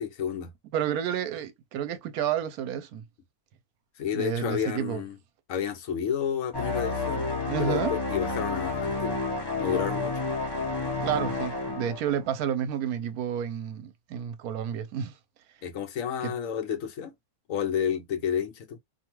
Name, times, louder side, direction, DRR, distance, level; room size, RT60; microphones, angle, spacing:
voice 1, 0.0-0.5 4.0-5.2 5.5-7.3 7.6-9.2 9.6-10.2 15.6-17.1 17.5-18.8, left 8 dB, 70° left, 1.0 m, -30 dB
voice 2, 0.7-3.0 4.1-5.0 7.5-8.0 11.0-15.1 16.2-16.3, right 9 dB, 85° right, 1.1 m, -30 dB
sound 1, 6.5-12.3, left 3 dB, 25° left, 0.6 m, -30 dB
2.6 x 2.4 x 2.9 m
omnidirectional pair, 1.5 m